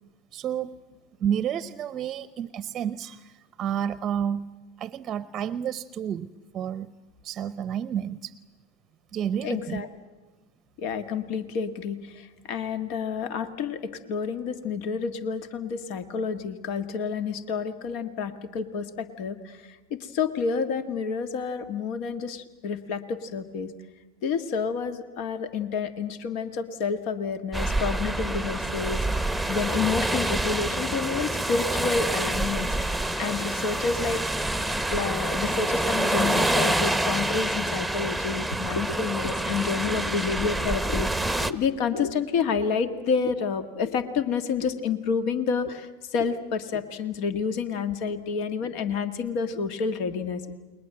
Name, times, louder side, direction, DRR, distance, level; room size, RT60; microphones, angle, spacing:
voice 1, 0.3-0.7 1.2-4.5 4.8-6.3 6.5-6.9 7.2-8.4 9.1-9.8, right 9 dB, 35° right, 16 dB, 0.7 m, -30 dB
voice 2, 9.4-9.9 10.8-13.8 14.1-19.6 19.9-23.7 24.2-29.0 29.5-34.2 34.5-34.6 34.9-50.5, left 5 dB, 60° left, 9 dB, 1.8 m, -29 dB
sound 1, 27.5-41.5, right 1 dB, ahead, 1.1 m, -27 dB
29.5 x 21.5 x 7.7 m, 1.2 s
hypercardioid pair, 90°, 0 cm